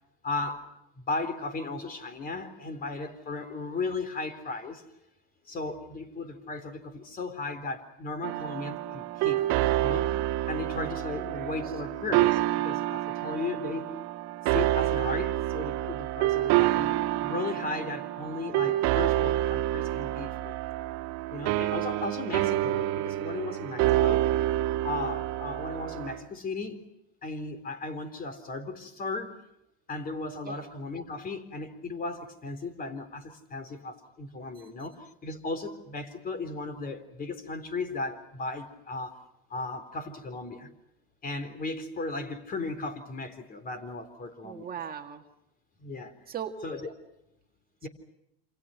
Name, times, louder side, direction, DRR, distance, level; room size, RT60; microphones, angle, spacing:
voice 1, 0.2-0.7 1.0-4.8 5.4-10.1 10.5-13.9 14.5-16.9 17.2-20.6 21.3-24.6 24.8-26.8 27.2-29.4 29.9-39.2 39.5-40.7 41.2-44.7 45.8-46.1 46.6-46.9 47.8-47.9, left 3 dB, 30° left, 10 dB, 4.1 m, -36 dB
sound 1, 8.2-26.2, right 15 dB, 55° right, 2.1 m, -28 dB
voice 2, 11.1-11.7 30.4-30.6 34.6-34.7 44.4-45.2 46.3-46.6 47.8-47.9, right 8 dB, 30° right, 4 dB, 1.9 m, -39 dB
28.0 x 27.5 x 5.8 m, 0.85 s
supercardioid pair, 110°, 30 cm